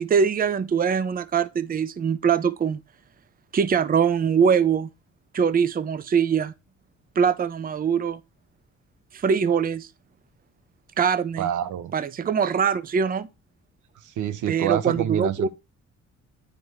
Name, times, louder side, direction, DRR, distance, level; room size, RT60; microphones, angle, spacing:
voice 1, 0.0-2.8 3.5-4.9 5.3-6.5 7.2-8.2 9.1-9.9 11.0-11.5 11.9-13.3 14.5-15.5, right 6 dB, 30° right, 0.6 m, -22 dB
voice 2, 11.4-11.9 14.0-15.5, right 10 dB, 75° right, 0.8 m, -27 dB
9.4 x 5.0 x 3.1 m
cardioid pair, 90°, 30 cm